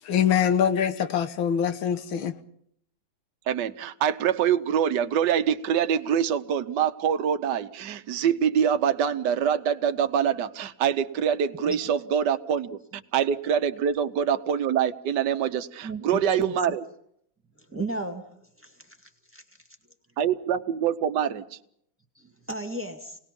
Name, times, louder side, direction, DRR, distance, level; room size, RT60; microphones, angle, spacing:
voice 1, 0.0-2.4, left 8 dB, 90° left, 1.9 m, -24 dB
voice 2, 3.5-16.8 20.2-21.4, right 8 dB, 65° right, 1.5 m, -25 dB
voice 3, 15.8-16.5 17.7-18.3 18.6-18.7 19.3-19.4 22.2-23.2, right 2 dB, 5° right, 2.1 m, -34 dB
28.5 x 19.0 x 5.4 m
omnidirectional pair, 2.1 m